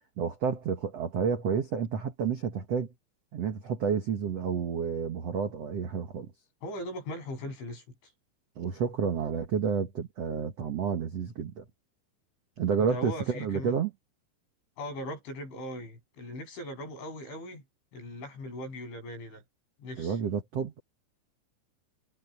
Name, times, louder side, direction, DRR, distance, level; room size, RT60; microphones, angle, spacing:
voice 1, 0.2-2.9 3.3-6.3 8.6-11.6 12.6-13.9 20.0-20.8, right 6 dB, 75° right, 1.4 m, -30 dB
voice 2, 6.6-7.8 12.8-13.8 14.8-17.6 17.9-19.4 19.8-20.2, left 1 dB, 80° left, 10.5 m, -39 dB
omnidirectional pair, 5.3 m